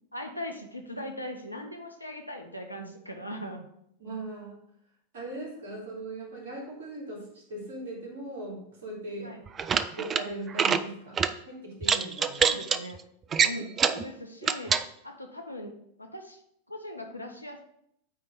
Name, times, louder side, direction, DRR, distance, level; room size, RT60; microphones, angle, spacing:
voice 1, 0.1-3.7 9.2-9.4 12.4-13.0 13.4-14.7 15.0-16.4 16.7-17.6, left 1 dB, 85° left, 3 dB, 0.9 m, -40 dB
voice 2, 4.0-4.5 5.1-9.4 9.9-12.5, right 2 dB, 55° right, -2 dB, 2.7 m, -39 dB
sound 1, 9.5-10.2 10.5-10.8 11.2-11.3 11.8-12.8 13.3-14.0 14.4-14.8, right 6 dB, 25° right, 0.3 m, -25 dB
9.0 x 3.3 x 5.2 m, 0.74 s
figure-of-eight pair, 90°, 0 cm